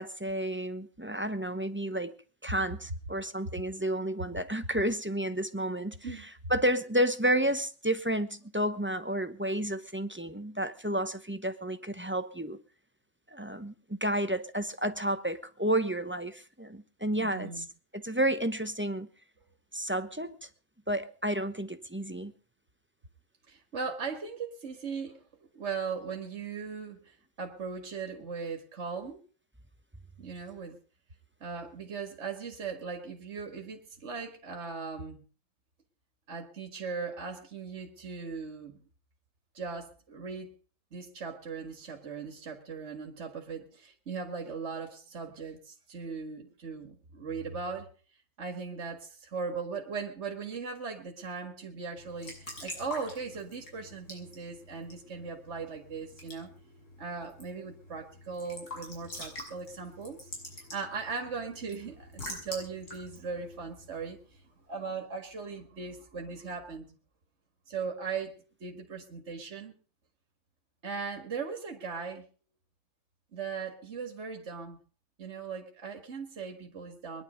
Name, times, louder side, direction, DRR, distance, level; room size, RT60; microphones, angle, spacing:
voice 1, 0.0-2.1 2.4-6.0 6.5-12.6 13.3-17.6 17.9-19.1 19.7-20.5 20.9-22.3, right 1 dB, 10° right, 10 dB, 0.8 m, -31 dB
voice 2, 17.2-17.7 23.5-25.2 25.5-29.2 30.2-30.8 31.4-35.2 36.3-38.8 39.5-40.5 40.9-47.9 48.4-56.5 57.0-60.3 60.6-64.4 64.7-67.0 67.7-68.3 68.6-69.7 70.8-72.3 73.3-74.8 75.2-77.2, right 5 dB, 45° right, 4 dB, 2.3 m, -38 dB
Raindrop / Drip / Trickle dribble, 52.0-64.4, left 1 dB, 80° left, 7.3 m, -46 dB
21.5 x 11.0 x 5.2 m, 0.39 s
omnidirectional pair, 1.6 m